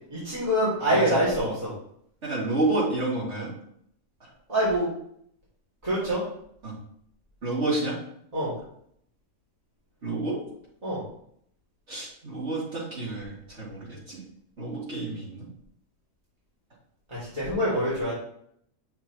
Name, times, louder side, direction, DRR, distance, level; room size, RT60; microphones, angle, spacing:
voice 1, 0.1-1.7 4.5-4.9 5.8-6.2 8.3-8.5 10.8-11.0 17.1-18.1, equal, 30° right, -10 dB, 2.7 m, -25 dB
voice 2, 2.2-3.5 4.2-4.3 6.6-6.7 7.4-8.0 10.0-10.4 11.9-14.2 14.6-15.5, right 2 dB, 65° right, -7 dB, 3.3 m, -29 dB
8.0 x 6.0 x 3.1 m, 0.70 s
omnidirectional pair, 1.3 m